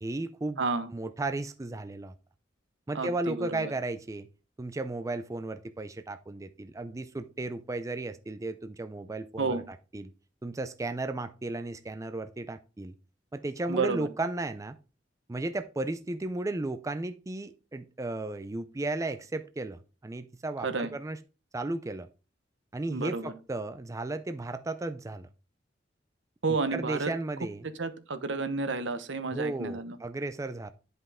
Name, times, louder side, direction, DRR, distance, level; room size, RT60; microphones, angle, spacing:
voice 1, 0.0-0.6 0.9-2.1 2.9-4.3 4.6-10.1 10.4-12.9 13.3-14.8 15.3-21.2 21.5-22.1 22.7-25.3 26.7-27.7 29.3-30.7, right 2 dB, 15° right, 0.4 m, -34 dB
voice 2, 0.6-0.9 2.9-3.7 9.4-9.6 13.7-14.1 20.6-20.9 22.9-23.3 26.4-27.1 27.8-30.0, right 4 dB, 75° right, 1.0 m, -31 dB
9.9 x 5.4 x 3.6 m
head